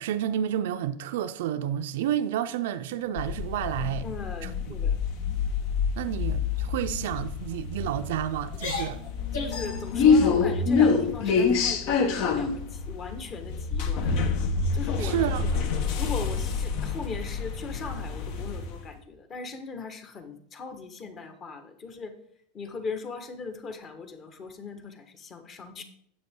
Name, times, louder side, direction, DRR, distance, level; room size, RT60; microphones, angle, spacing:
voice 1, 0.0-4.1 4.4-4.5 6.0-9.0 15.0-15.7, right 10 dB, 75° right, 0.5 m, -30 dB
sound 1, 2.8-3.4 3.8-4.0 4.4-4.7 5.1-5.4 6.0-6.4 6.9-7.1 7.8-8.1 8.5-9.7, left 4 dB, 80° left, 2.6 m, -39 dB
sound 2, 3.2-18.8, left 5 dB, 60° left, 1.2 m, -27 dB
voice 2, 4.0-5.0 9.3-14.2 14.7-15.3 16.0-22.1 22.5-25.8, left 4 dB, 35° left, 1.5 m, -39 dB
9.3 x 7.7 x 3.7 m
hypercardioid pair, 110°, 0 cm